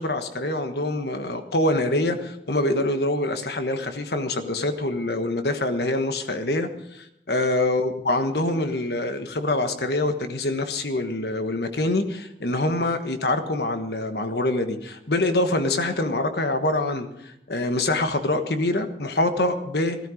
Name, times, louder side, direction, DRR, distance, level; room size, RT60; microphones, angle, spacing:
voice 1, 0.0-20.0, left 2 dB, 65° left, 7 dB, 1.3 m, -25 dB
15.5 x 13.5 x 5.0 m, 0.78 s
head